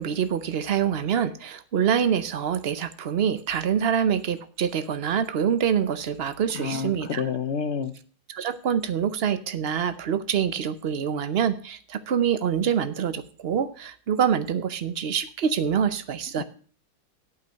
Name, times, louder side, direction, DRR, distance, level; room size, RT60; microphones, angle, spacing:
voice 1, 0.0-7.2 8.3-16.4, right 8 dB, 55° right, 13 dB, 0.7 m, -25 dB
voice 2, 6.6-7.9, left 6 dB, 65° left, 12 dB, 0.7 m, -28 dB
8.7 x 8.5 x 6.4 m, 0.42 s
omnidirectional pair, 1.9 m